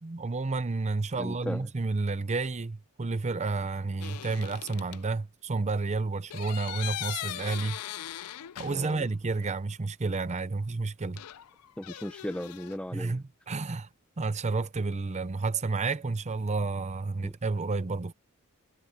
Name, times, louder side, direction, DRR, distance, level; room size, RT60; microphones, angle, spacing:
voice 1, 0.0-7.8 8.6-11.2 12.9-13.9 14.2-18.1, right 3 dB, 30° right, 0.6 m, -31 dB
voice 2, 1.2-1.7 8.7-9.1 11.8-13.2 17.2-17.3, equal, 5° left, 0.7 m, -37 dB
sound 1, 4.0-5.0 6.3-9.2 9.4-9.5 11.2-12.8, left 12 dB, 85° left, 0.4 m, -40 dB
head